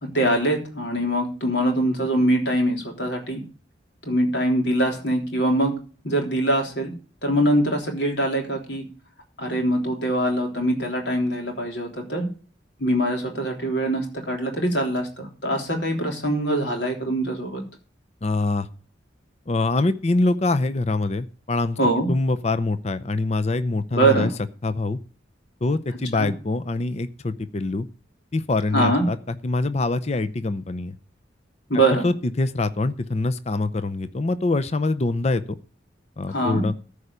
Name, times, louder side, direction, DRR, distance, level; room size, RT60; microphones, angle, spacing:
voice 1, 0.0-3.4 4.0-5.7 6.0-6.9 7.2-8.9 9.4-12.3 12.8-17.6 21.8-22.1 23.9-24.3 26.1-26.3 28.7-29.1 31.7-32.1 36.3-36.7, right 1 dB, 70° left, 2 dB, 3.5 m, -23 dB
voice 2, 18.2-18.7 19.5-21.8 22.1-24.3 24.6-25.0 25.6-27.9 28.3-30.9 31.9-35.4 36.2-36.7, left 2 dB, 35° left, 12 dB, 0.6 m, -24 dB
14.0 x 5.0 x 6.7 m, 0.40 s
head